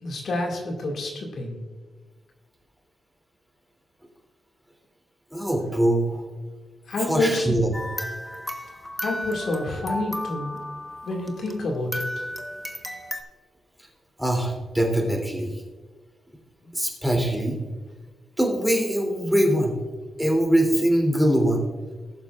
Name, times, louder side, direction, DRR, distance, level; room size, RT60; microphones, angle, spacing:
voice 1, 0.0-1.6 6.9-7.5 9.0-10.7 11.0-12.3, left 2 dB, 70° left, 0 dB, 2.3 m, -28 dB
voice 2, 5.3-6.2 7.0-7.7 14.2-15.5 16.7-17.6 18.4-19.8 20.2-21.7, right 1 dB, 5° right, 0 dB, 3.1 m, -22 dB
sound 1, 7.7-11.6 11.9-13.2, left 1 dB, 15° left, 1.3 m, -34 dB
19.5 x 7.1 x 2.5 m, 1.4 s
cardioid pair, 70°, 0 cm